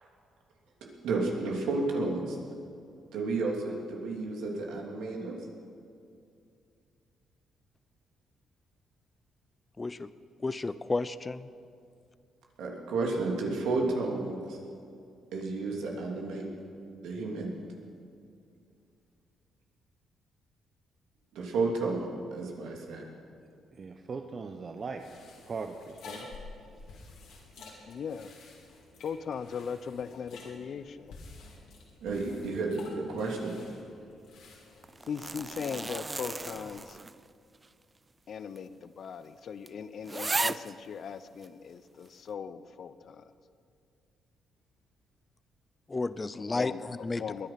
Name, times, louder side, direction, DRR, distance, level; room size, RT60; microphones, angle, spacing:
voice 1, 1.0-2.4 3.1-5.3 12.6-14.6 15.3-16.4 17.0-17.5 21.3-23.0 32.0-33.5, right 3 dB, 85° right, -1 dB, 3.1 m, -31 dB
voice 2, 9.8-10.1 10.4-11.5 45.9-47.2, left 3 dB, 25° left, 15 dB, 0.6 m, -32 dB
voice 3, 23.7-25.0 25.4-26.3, right 4 dB, 40° right, 5 dB, 0.9 m, -39 dB
sound 1, 24.8-36.8, left 3 dB, 80° left, 3.4 m, -51 dB
voice 4, 27.9-28.3 29.0-31.2 35.1-37.0 38.3-43.3 46.5-47.5, left 6 dB, 60° left, 13 dB, 0.7 m, -39 dB
sound 2, 34.8-37.3 37.6-37.7 38.6-38.7 39.0-39.1 39.7-39.8 40.0-40.7 41.4-41.5, right 3 dB, 20° right, 0.4 m, -35 dB
21.0 x 10.5 x 5.9 m, 2.4 s
cardioid pair, 90°, 0 cm